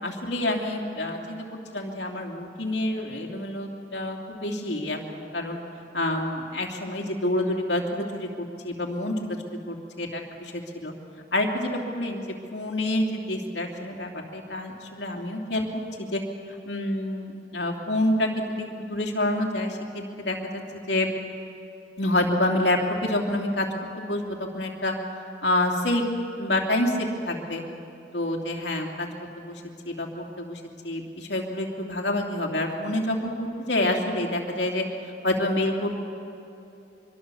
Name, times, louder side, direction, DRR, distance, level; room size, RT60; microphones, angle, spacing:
voice 1, 0.0-5.6 5.9-9.1 9.5-10.9 11.3-16.2 16.7-20.4 20.9-21.1 22.0-23.6 24.0-25.0 25.4-26.0 26.4-27.6 28.1-29.1 29.4-29.6 29.9-34.8 35.2-36.0, left 1 dB, 70° left, 1 dB, 3.1 m, -28 dB
25.0 x 22.5 x 7.1 m, 2.9 s
head